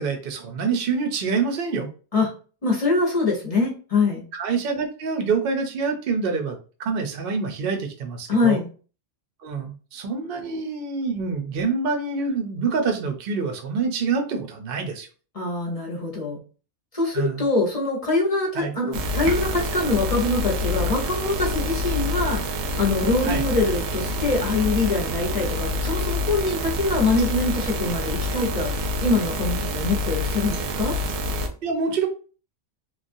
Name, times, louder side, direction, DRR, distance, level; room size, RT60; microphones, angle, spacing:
voice 1, 0.0-1.9 4.3-8.6 9.4-15.1 17.1-17.5 18.5-18.7 23.2-23.4 31.6-32.1, right 5 dB, 55° right, 4 dB, 0.7 m, -26 dB
voice 2, 2.6-4.2 8.3-8.7 15.3-16.4 16.9-31.0, left 3 dB, 35° left, -3 dB, 0.7 m, -24 dB
sound 1, 18.9-31.5, left 1 dB, 75° right, 0.9 m, -27 dB
3.1 x 2.3 x 2.6 m, 0.37 s
omnidirectional pair, 1.4 m